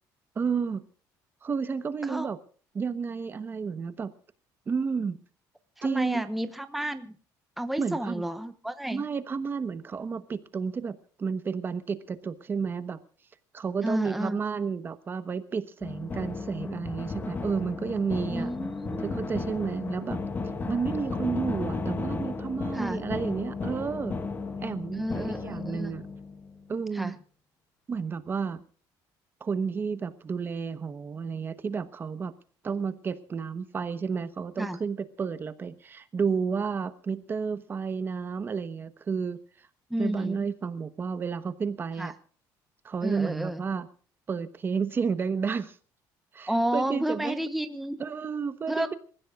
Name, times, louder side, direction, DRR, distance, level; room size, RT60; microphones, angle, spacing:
voice 1, 0.3-0.9 1.4-2.4 2.7-4.1 4.7-5.2 5.8-6.2 7.8-8.2 8.9-13.0 13.5-18.5 19.0-20.2 20.7-24.2 24.6-26.0 26.7-27.1 27.9-28.6 29.4-32.3 32.6-39.4 40.0-42.1 42.8-43.9 44.3-45.8 46.3-47.4 48.0-48.9, right 5 dB, 25° right, 12 dB, 1.1 m, -31 dB
voice 2, 5.8-7.1 7.6-9.0 13.8-14.4 18.3-19.3 22.7-23.0 25.0-25.9 26.9-27.1 34.6-34.8 39.9-40.4 42.0-42.1 43.0-43.6 46.5-48.0 48.7-48.9, right 1 dB, ahead, 9 dB, 1.0 m, -31 dB
sound 1, 15.8-26.8, left 3 dB, 25° left, 1.5 m, -34 dB
27.5 x 15.5 x 2.5 m, 0.42 s
cardioid pair, 145°, 8 cm